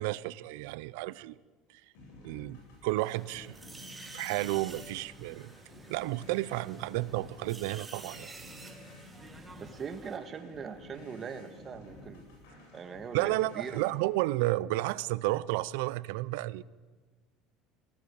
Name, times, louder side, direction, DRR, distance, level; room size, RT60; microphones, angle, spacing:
voice 1, 0.0-1.3 2.2-3.6 4.1-5.5 5.9-8.3 13.1-16.6, right 18 dB, 85° right, 20 dB, 0.6 m, -32 dB
sound 1, 1.9-13.9, left 2 dB, 85° left, 7.9 m, -52 dB
sound 2, 3.0-10.2, right 3 dB, 15° right, 2.4 m, -50 dB
voice 2, 9.6-12.3 12.7-13.9 16.1-16.2, right 6 dB, 30° right, 9 dB, 1.8 m, -41 dB
18.5 x 17.0 x 8.7 m, 1.4 s
supercardioid pair, 120°, 0 cm